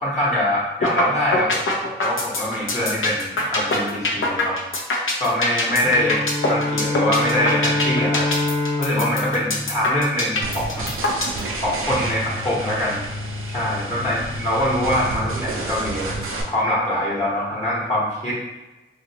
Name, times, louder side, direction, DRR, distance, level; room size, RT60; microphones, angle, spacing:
voice 1, 0.0-1.6 2.0-4.6 5.2-6.2 6.5-8.3 8.8-10.9 11.6-13.0 13.5-16.2 16.5-18.3, left 1 dB, 35° left, -7 dB, 1.1 m, -23 dB
sound 1, 0.8-1.0 1.3-11.4, left 2 dB, 75° left, 0.7 m, -22 dB
Bowed string instrument, 5.8-10.5, left 2 dB, 10° right, 0.7 m, -26 dB
sound 2, 10.4-16.4, right 1 dB, 85° right, 0.5 m, -29 dB
3.0 x 2.5 x 2.8 m, 1.1 s
wide cardioid pair, 80°, 21 cm